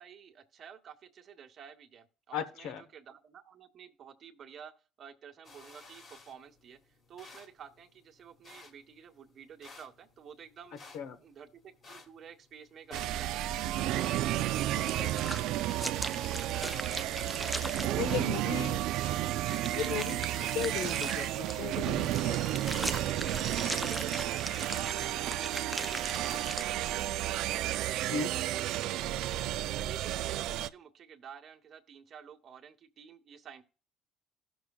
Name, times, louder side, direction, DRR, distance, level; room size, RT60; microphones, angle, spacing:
voice 1, 0.0-4.7 5.0-6.8 7.1-10.8 11.2-13.6 13.9-17.5 17.8-18.7 23.8-29.5 29.8-33.6, right 8 dB, 45° right, 1.2 m, -51 dB
voice 2, 2.3-2.8 10.9-11.2 13.9-14.0 15.0-15.1 17.9-18.8 19.7-22.5 28.1-28.4, left 6 dB, 75° left, 1.0 m, -36 dB
sound 1, 5.4-20.9, left 3 dB, 40° left, 1.6 m, -55 dB
sound 2, 12.9-30.7, right 14 dB, 75° right, 0.4 m, -32 dB
sound 3, 14.6-17.9 19.5-26.6, equal, ahead, 0.4 m, -40 dB
16.0 x 6.3 x 2.3 m
cardioid pair, 110°, 0 cm